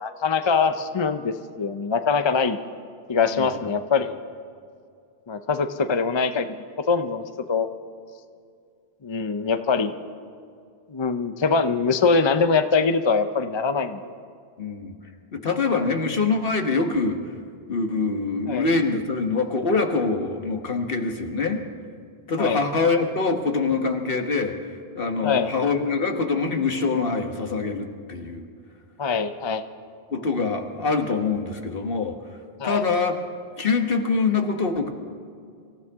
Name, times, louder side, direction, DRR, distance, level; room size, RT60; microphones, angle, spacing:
voice 1, 0.0-2.6 3.1-4.1 5.3-7.7 9.0-9.9 10.9-14.1 18.5-18.7 22.4-22.6 25.2-25.5 29.0-29.6 32.6-32.8, left 5 dB, 35° left, 9 dB, 0.6 m, -23 dB
voice 2, 14.6-15.0 15.3-17.2 17.7-21.6 22.3-28.4 30.1-32.2 32.6-33.2 33.6-34.9, left 4 dB, 60° left, 5 dB, 1.5 m, -24 dB
26.0 x 15.0 x 3.6 m, 2.3 s
omnidirectional pair, 1.0 m